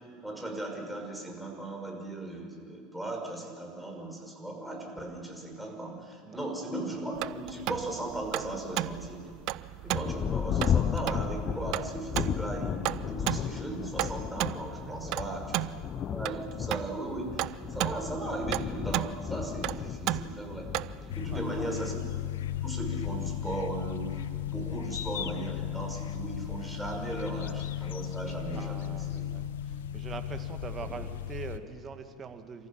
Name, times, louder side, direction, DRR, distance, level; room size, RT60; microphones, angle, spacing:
voice 1, 0.2-9.3 9.8-15.7 16.1-20.7 21.2-22.2 22.6-29.3 30.8-31.0, right 2 dB, 5° right, 1 dB, 5.9 m, -37 dB
sound 1, 7.2-21.2, right 17 dB, 60° right, 0.5 m, -35 dB
Thunder, 9.9-25.9 26.7-26.8 27.4-27.8, left 8 dB, 40° left, 0.6 m, -35 dB
voice 2, 14.7-15.2 21.0-21.4 28.5-32.7, right 5 dB, 30° right, 7 dB, 2.1 m, -43 dB
sound 2, 21.1-31.6, left 11 dB, 80° left, 0.8 m, -35 dB
28.0 x 15.0 x 7.5 m, 2.4 s
hypercardioid pair, 80°, 0 cm